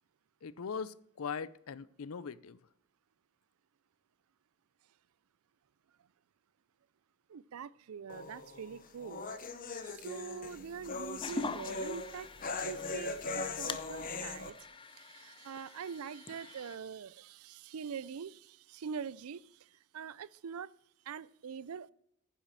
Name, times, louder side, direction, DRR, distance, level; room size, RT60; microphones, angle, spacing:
voice 1, 0.4-2.6, left 6 dB, 80° left, 0.5 m, -40 dB
voice 2, 7.3-9.2 9.8-12.3 12.7-14.6 14.9-20.7 21.1-21.9, right 6 dB, 85° right, 0.4 m, -44 dB
sound 1, 8.1-14.5, left 3 dB, 40° left, 1.0 m, -40 dB
sound 2, 11.2-16.8, left 4 dB, 25° left, 0.6 m, -44 dB
10.0 x 7.4 x 7.3 m
head